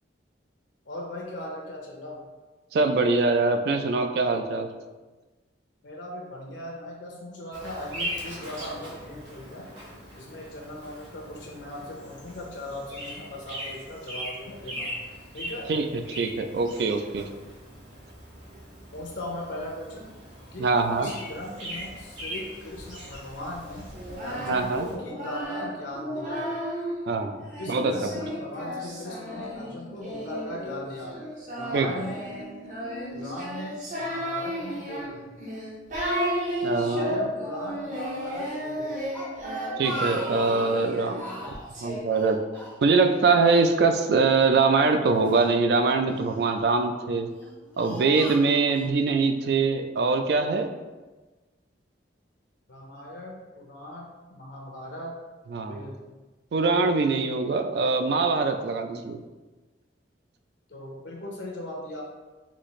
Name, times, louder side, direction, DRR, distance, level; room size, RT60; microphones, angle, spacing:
voice 1, 0.9-2.2 5.8-9.7 10.1-14.9 15.3-15.7 18.9-20.1 20.5-23.9 24.2-26.5 27.6-31.1 31.6-32.3 33.1-35.3 36.7-38.9 52.7-55.2 55.6-56.0 60.7-62.0, left 1 dB, 75° left, -1 dB, 0.6 m, -38 dB
voice 2, 2.7-4.7 15.7-15.8 16.2-17.3 20.6-21.1 24.5-24.9 27.1-27.9 31.7-31.9 36.6-37.3 39.8-41.5 41.8-42.4 42.8-47.3 47.8-50.7 55.5-55.9 56.5-59.2, right 4 dB, 60° right, 6 dB, 0.3 m, -23 dB
Bird vocalization bird call bird song, 7.5-24.9, equal, 85° right, 1.2 m, -40 dB
Singing, 23.9-27.0 27.5-42.0, equal, 40° right, 0.7 m, -33 dB
Speech, 39.1-40.8 41.2-41.7 42.1-43.2 43.5-43.6 44.5-45.5 46.2-46.6 47.2-48.9, right 1 dB, 10° left, 0.5 m, -38 dB
4.0 x 2.4 x 3.1 m, 1.2 s
head